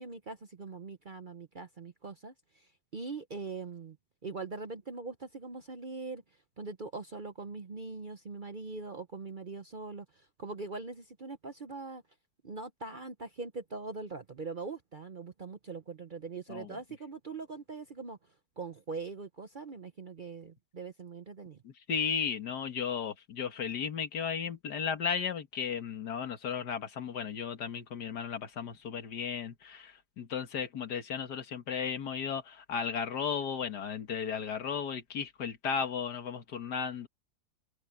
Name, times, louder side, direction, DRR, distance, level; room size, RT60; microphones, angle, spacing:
voice 1, 0.0-4.0 4.2-6.2 6.6-12.0 12.4-18.2 18.6-21.6, right 4 dB, 40° right, 0.7 m, -42 dB
voice 2, 21.6-37.1, left 7 dB, 80° left, 2.1 m, -35 dB
omnidirectional pair, 1.7 m